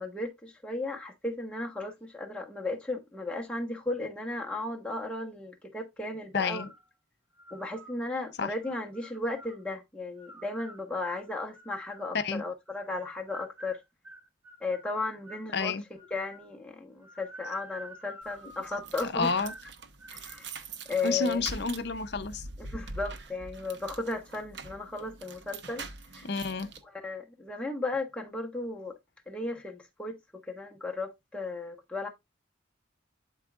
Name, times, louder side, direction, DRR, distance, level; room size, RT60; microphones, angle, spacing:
voice 1, 0.0-6.7 7.5-13.8 14.6-15.7 16.1-19.5 20.1-21.4 22.6-25.9 26.1-26.3 26.8-29.0 29.3-32.1, left 2 dB, 5° left, 1.2 m, -35 dB
voice 2, 6.3-6.7 8.4-8.5 12.1-12.4 15.5-15.8 19.0-19.5 21.0-22.4 26.2-26.7, left 4 dB, 55° left, 0.7 m, -30 dB
sound 1, 6.4-6.8 7.4-8.0 8.6-9.6 10.2-12.1 12.7-15.5 16.0-16.5 17.0-19.0 19.4-19.7 20.0-20.4, equal, 10° right, 1.0 m, -49 dB
sound 2, 18.2-26.8, right 3 dB, 60° right, 0.9 m, -44 dB
11.5 x 4.6 x 2.5 m
head